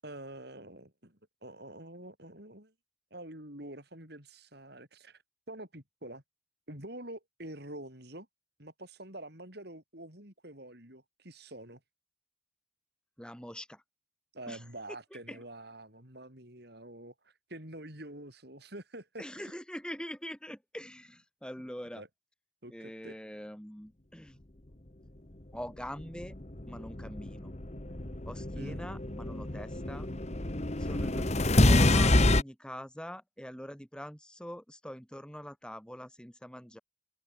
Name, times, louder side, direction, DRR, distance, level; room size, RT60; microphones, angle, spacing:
voice 1, 0.0-2.7 3.1-5.2 5.5-6.2 6.7-8.3 8.6-11.8 14.3-19.5 21.9-22.1 22.6-23.2 28.6-28.8, right 1 dB, 50° right, 6.6 m, -46 dB
voice 2, 13.2-13.8 14.5-14.6 15.1-15.4 19.2-22.0 22.7-24.4 25.5-26.3 26.7-27.5 28.3-30.1 30.8-36.8, equal, 5° left, 4.4 m, -44 dB
sound 1, 26.0-32.4, left 2 dB, 35° left, 1.4 m, -27 dB
head